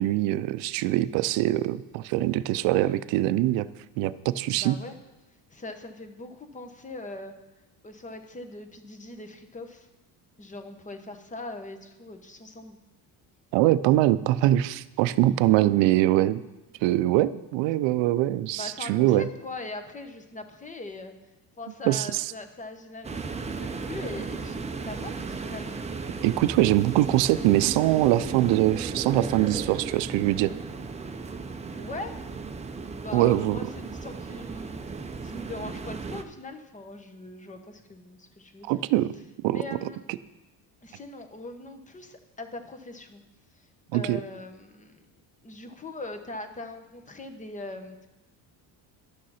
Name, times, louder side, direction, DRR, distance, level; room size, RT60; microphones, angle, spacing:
voice 1, 0.0-3.7 4.0-4.8 13.5-16.4 16.8-19.3 21.9-22.2 26.2-30.5 33.1-33.6 38.6-39.1 39.4-39.6 40.1-40.2 43.9-44.2, right 15 dB, 80° right, 15 dB, 0.6 m, -23 dB
voice 2, 4.4-4.9 5.5-7.3 7.8-9.9 10.4-12.8 18.6-21.1 21.6-25.8 31.1-31.3 31.8-32.1 32.9-34.8 35.2-38.8 39.5-40.0 40.8-43.2 43.6-43.7 43.9-45.1 45.4-48.1, left 2 dB, 15° left, 7 dB, 1.0 m, -41 dB
sound 1, 23.0-36.2, right 4 dB, 15° right, 0.6 m, -35 dB
11.5 x 6.5 x 5.6 m, 1.0 s
cardioid pair, 115°, 43 cm